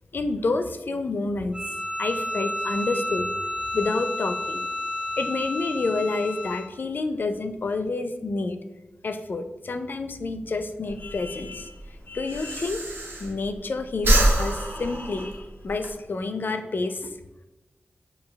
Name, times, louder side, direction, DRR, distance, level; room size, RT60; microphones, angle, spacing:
voice 1, 0.1-1.7 2.0-3.3 3.7-4.7 5.2-8.6 9.0-11.8 12.1-12.8 13.2-17.1, left 3 dB, 65° left, 8 dB, 0.4 m, -29 dB
Bowed string instrument, 1.5-6.8, left 1 dB, 25° right, 0.6 m, -31 dB
Breathing, 10.9-13.6 13.9-15.9, right 1 dB, 90° right, 0.6 m, -25 dB
4.4 x 2.2 x 3.3 m, 1.0 s
cardioid pair, 50°, 4 cm